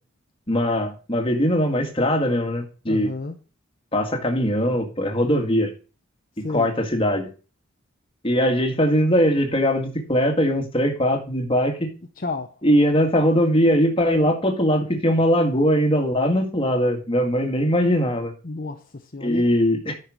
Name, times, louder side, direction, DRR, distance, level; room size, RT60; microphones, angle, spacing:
voice 1, 0.5-3.1 3.9-5.7 6.5-7.3 8.2-11.9 12.6-18.3 19.2-19.9, equal, 25° left, 1.9 m, -21 dB
voice 2, 2.9-3.4 6.4-6.7 12.2-12.6 18.4-19.4, left 3 dB, 40° left, 0.8 m, -31 dB
10.0 x 5.8 x 6.1 m
head